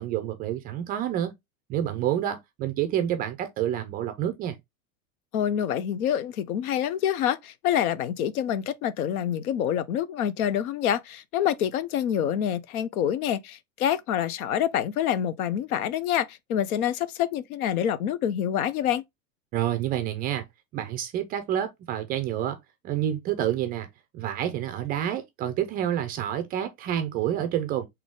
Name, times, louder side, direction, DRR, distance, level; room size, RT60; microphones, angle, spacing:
voice 1, 0.0-1.3 1.7-4.6 19.5-20.4 20.7-22.6 22.8-23.9 24.1-27.9, right 11 dB, 25° right, 0.3 m, -28 dB
voice 2, 5.3-19.0, left 10 dB, 80° left, 0.7 m, -26 dB
3.9 x 2.8 x 3.5 m
supercardioid pair, 135°, 43 cm